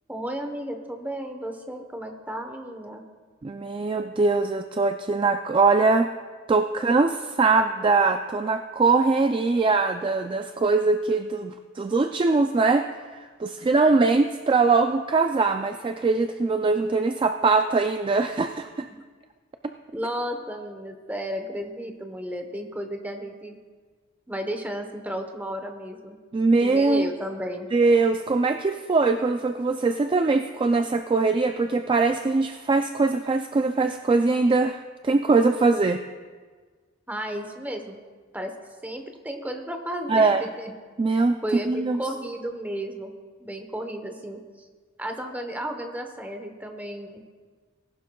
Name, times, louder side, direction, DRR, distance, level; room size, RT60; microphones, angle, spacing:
voice 1, 0.1-3.0 19.0-19.1 19.9-23.6 24.3-26.2 26.6-27.7 37.1-38.0 38.3-38.5 38.8-40.7 41.1-43.1 43.4-44.4 45.0-47.2, right 1 dB, 10° right, 4 dB, 1.0 m, -33 dB
voice 2, 3.4-6.1 6.5-12.9 13.1-18.9 26.3-27.1 27.7-36.0 40.1-40.4 41.0-41.4 41.7-42.0, right 3 dB, 25° right, 7 dB, 0.3 m, -22 dB
19.0 x 11.5 x 2.3 m, 1.5 s
head